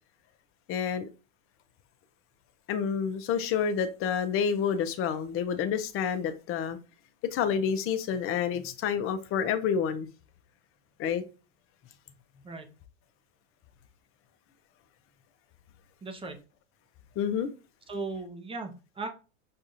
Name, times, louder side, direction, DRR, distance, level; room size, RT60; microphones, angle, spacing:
voice 1, 0.7-1.1 2.7-6.8 7.2-10.1 11.0-11.2 17.2-17.5, left 7 dB, 35° left, 0.6 m, -29 dB
voice 2, 16.0-16.4 17.9-19.1, right 3 dB, 15° right, 0.7 m, -37 dB
6.4 x 2.4 x 2.8 m
supercardioid pair, 125°, 40 cm